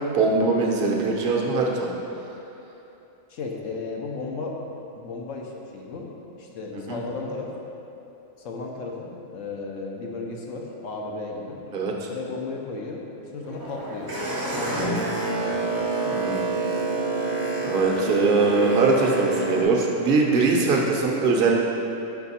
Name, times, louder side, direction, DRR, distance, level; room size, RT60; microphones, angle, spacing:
voice 1, 0.0-1.9 6.7-7.0 11.7-12.1 14.7-15.0 16.0-16.4 17.6-21.6, right 3 dB, 50° right, 0 dB, 0.8 m, -22 dB
voice 2, 3.3-4.5 5.0-6.1 6.4-7.5 8.4-11.6 12.1-14.1 14.5-15.7, left 3 dB, 75° left, -1 dB, 1.0 m, -34 dB
Boat Water vehicle, 13.4-19.6, right 3 dB, 25° right, 0.5 m, -27 dB
5.7 x 4.5 x 4.2 m, 2.9 s
omnidirectional pair, 1.4 m